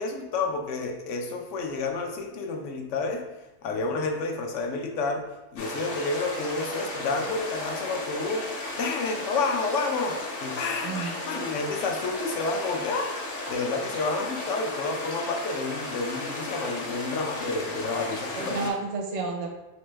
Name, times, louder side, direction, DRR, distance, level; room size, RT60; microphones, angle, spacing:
voice 1, 0.0-3.3 3.6-5.3 5.5-18.5, left 3 dB, 85° left, 3 dB, 0.9 m, -30 dB
sound 1, 5.6-18.7, left 2 dB, 55° left, 0.8 m, -35 dB
voice 2, 10.8-11.5 18.1-19.5, right 4 dB, 75° right, 1 dB, 1.0 m, -32 dB
3.2 x 3.1 x 3.2 m, 1.0 s
omnidirectional pair, 1.2 m